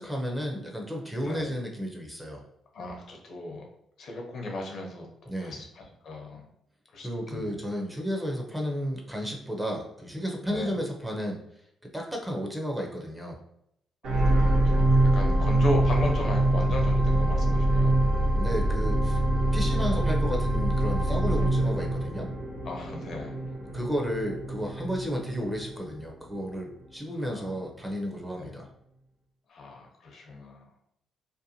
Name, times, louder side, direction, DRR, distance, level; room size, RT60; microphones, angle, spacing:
voice 1, 0.0-2.4 5.3-5.6 7.0-11.4 11.9-13.4 18.3-19.2 19.5-22.3 23.7-28.7, equal, 10° right, 0 dB, 0.5 m, -32 dB
voice 2, 1.2-1.6 2.7-3.6 4.0-5.1 5.4-6.4 6.9-7.7 10.4-10.8 14.1-17.9 22.6-23.4 27.2-27.6 28.3-28.6 29.5-30.7, left 2 dB, 60° left, 1 dB, 0.7 m, -36 dB
sound 1, 14.0-26.4 27.0-27.1, right 1 dB, 80° right, 1.0 m, -25 dB
2.6 x 2.1 x 2.7 m, 0.75 s
cardioid pair, 90°, 0 cm